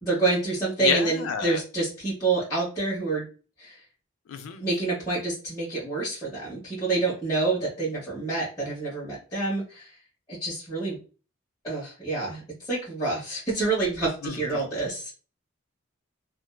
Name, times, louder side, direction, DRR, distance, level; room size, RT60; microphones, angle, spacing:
voice 1, 0.0-3.2 3.6-3.8 4.6-10.0 10.3-11.0 11.6-15.1, right 3 dB, 20° left, -10 dB, 1.0 m, -28 dB
voice 2, 0.8-1.6 4.3-4.7 14.2-14.6, left 6 dB, 70° left, 8 dB, 0.4 m, -29 dB
2.6 x 2.2 x 2.2 m, 0.36 s
head